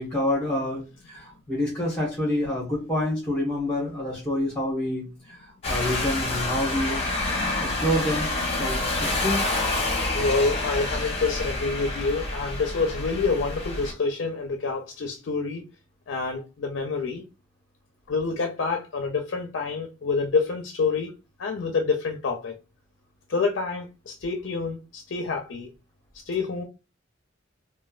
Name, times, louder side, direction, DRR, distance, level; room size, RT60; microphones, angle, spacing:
voice 1, 0.0-7.1 7.4-8.3 8.6-9.4, left 1 dB, 10° left, 1.0 m, -28 dB
sound 1, 5.6-13.9, left 2 dB, 30° left, 0.8 m, -28 dB
voice 2, 10.1-15.6 16.1-17.2 18.1-21.1 21.4-22.5 23.3-25.7 26.3-26.6, left 4 dB, 70° left, 0.4 m, -27 dB
3.1 x 2.2 x 2.3 m
head